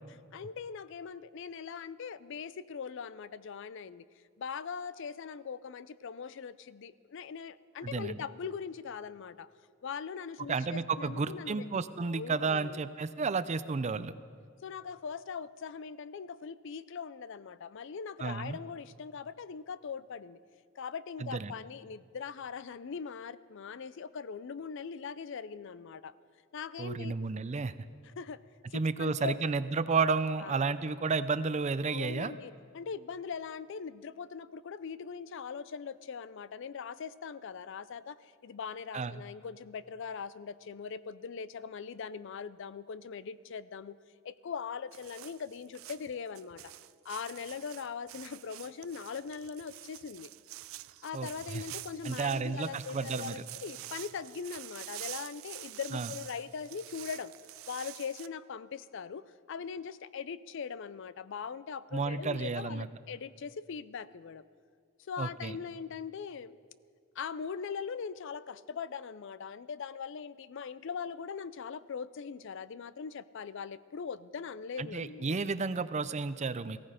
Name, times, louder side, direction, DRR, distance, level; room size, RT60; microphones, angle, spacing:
voice 1, 0.1-4.0 4.4-9.5 9.8-11.7 12.1-12.8 14.0-14.1 14.6-20.4 20.8-26.1 26.5-27.1 28.2-28.4 28.7-29.4 30.4-30.8 31.9-44.0 44.2-46.7 47.0-50.3 51.0-57.3 57.7-64.4 65.1-66.6 67.2-75.4, left 6 dB, 65° left, 17 dB, 0.4 m, -41 dB
voice 2, 7.8-8.2 10.5-14.1 18.2-18.6 21.2-21.5 26.8-27.7 28.7-32.3 38.9-39.2 51.1-51.6 52.0-53.4 55.9-56.1 61.9-62.9 65.2-65.6 74.8-76.9, right 4 dB, 35° right, 14 dB, 0.5 m, -32 dB
sound 1, 44.9-58.3, right 16 dB, 90° right, 0.4 m, -47 dB
18.0 x 15.5 x 5.1 m, 2.1 s
head